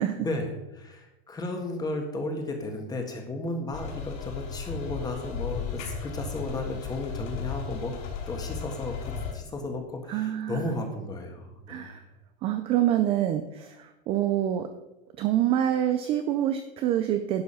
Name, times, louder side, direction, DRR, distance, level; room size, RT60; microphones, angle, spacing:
voice 1, 0.0-7.9 8.3-12.0, left 2 dB, 10° left, 3 dB, 1.6 m, -34 dB
sound 1, 3.7-9.3, left 6 dB, 50° left, 4.8 m, -35 dB
voice 2, 10.1-10.8 11.7-12.0 12.4-14.7 15.2-17.4, right 11 dB, 20° right, 8 dB, 0.4 m, -26 dB
11.5 x 7.1 x 5.6 m, 0.96 s
supercardioid pair, 155°, 31 cm